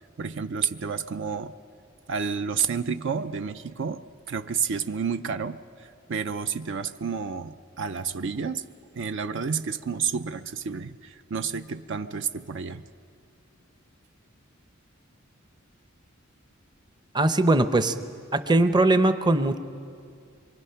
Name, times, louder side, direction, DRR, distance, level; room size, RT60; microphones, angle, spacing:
voice 1, 0.2-1.5 2.1-8.6 8.9-12.8, right 6 dB, 65° right, 10 dB, 0.5 m, -30 dB
voice 2, 17.1-17.9 18.3-19.6, right 2 dB, 20° right, 10 dB, 0.7 m, -20 dB
25.0 x 23.5 x 5.7 m, 2.4 s
head